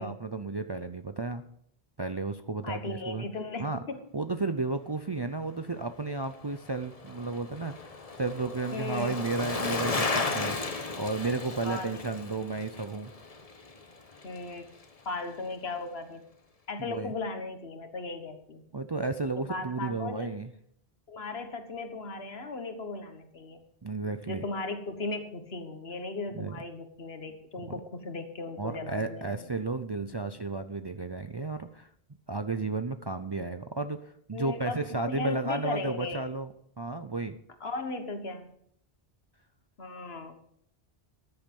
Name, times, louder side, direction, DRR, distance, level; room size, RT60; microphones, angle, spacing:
voice 1, 0.0-1.4 2.0-3.2 3.6-3.8 4.1-10.6 11.0-13.1 16.8-17.1 18.7-20.5 23.8-24.4 26.3-26.6 28.6-31.9 32.3-34.0 34.3-37.4, right 3 dB, 35° right, 9 dB, 0.4 m, -33 dB
voice 2, 2.6-4.1 8.7-9.2 11.6-12.0 14.2-14.7 15.1-16.2 16.7-18.7 19.5-20.3 21.1-23.6 24.3-29.5 34.3-36.2 37.6-38.5 39.8-40.4, left 3 dB, 75° left, 8 dB, 1.7 m, -37 dB
Bicycle, 6.1-14.5 14.8-14.9, left 3 dB, 35° left, 1.1 m, -35 dB
13.5 x 10.5 x 5.3 m, 0.69 s
omnidirectional pair, 1.1 m